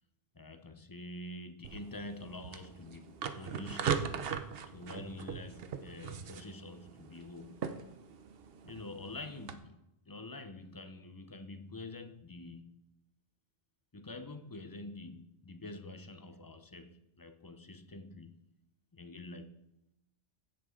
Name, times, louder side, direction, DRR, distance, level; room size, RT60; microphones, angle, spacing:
voice 1, 0.3-4.2 4.7-7.7 8.6-12.8 13.9-18.4 18.9-19.6, left 2 dB, 25° left, 0.5 m, -47 dB
sound 1, 1.6-9.5, right 7 dB, 60° right, 0.9 m, -40 dB
16.0 x 7.9 x 3.8 m
omnidirectional pair, 1.2 m